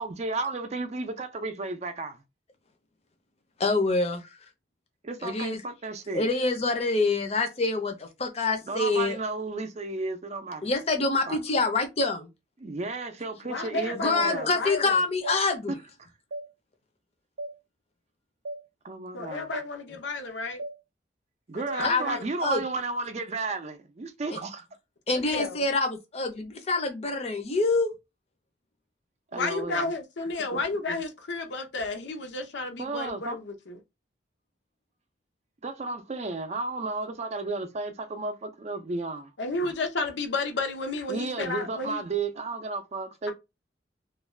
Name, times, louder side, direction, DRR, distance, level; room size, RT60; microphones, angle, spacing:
voice 1, 0.0-2.2 5.0-6.3 8.7-10.7 11.3-11.4 12.6-14.5 15.7-15.8 18.8-19.5 21.5-24.6 29.3-29.9 32.8-33.4 35.6-39.3 41.1-43.3, right 3 dB, 40° right, 0.4 m, -33 dB
voice 2, 3.6-4.2 5.2-5.6 6.1-9.2 10.6-12.3 13.9-15.8 21.8-22.6 25.1-27.9, left 3 dB, 35° left, 0.6 m, -26 dB
voice 3, 13.4-15.0 19.1-20.6 21.5-22.2 25.1-25.6 29.3-33.8 39.4-42.0, left 3 dB, 85° left, 0.7 m, -32 dB
sound 1, 14.2-14.3 15.2-15.4 16.3-16.5 17.4-17.5 18.5-18.6 19.5-19.7 20.6-20.8 21.7-21.8, right 1 dB, 85° right, 0.5 m, -36 dB
2.4 x 2.3 x 3.1 m
head